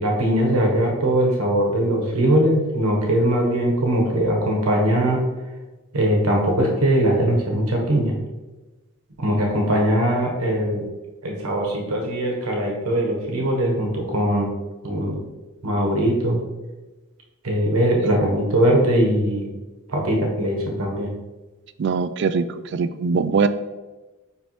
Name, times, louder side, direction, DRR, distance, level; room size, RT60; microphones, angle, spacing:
voice 1, 0.0-5.2 5.9-8.1 9.2-10.9 11.2-14.5 14.8-15.2 15.6-16.4 17.4-19.5 19.9-21.1, right 1 dB, 85° right, 0 dB, 1.2 m, -21 dB
voice 2, 21.8-22.5 22.7-23.5, right 5 dB, 55° right, 12 dB, 0.3 m, -21 dB
9.1 x 3.3 x 3.1 m, 1.2 s
head